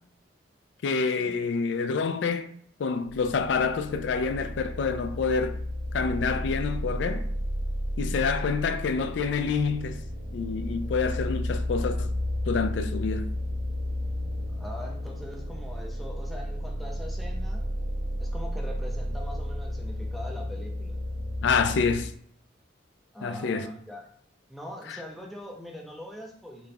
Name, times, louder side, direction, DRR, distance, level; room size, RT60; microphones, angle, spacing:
voice 1, 0.8-2.5 2.8-5.6 5.9-7.3 8.0-10.0 10.3-12.1 12.5-13.3 21.4-22.1 23.2-23.7 24.9-25.0, left 5 dB, 65° left, 0.3 m, -27 dB
sound 1, 3.3-22.0, left 1 dB, 50° right, 1.2 m, -32 dB
voice 2, 14.5-17.6 18.2-21.0 23.1-24.1 24.5-26.7, left 1 dB, ahead, 0.5 m, -42 dB
4.1 x 2.3 x 3.3 m
head